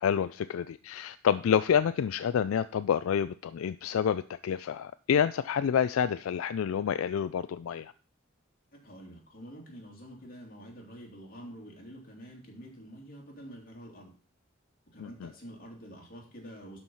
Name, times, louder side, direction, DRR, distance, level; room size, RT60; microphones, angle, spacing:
voice 1, 0.0-7.9 15.0-15.3, left 8 dB, 80° left, 14 dB, 0.3 m, -28 dB
voice 2, 8.7-14.1 14.9-16.8, equal, 45° left, 0 dB, 3.1 m, -47 dB
12.0 x 4.6 x 5.5 m, 0.40 s
head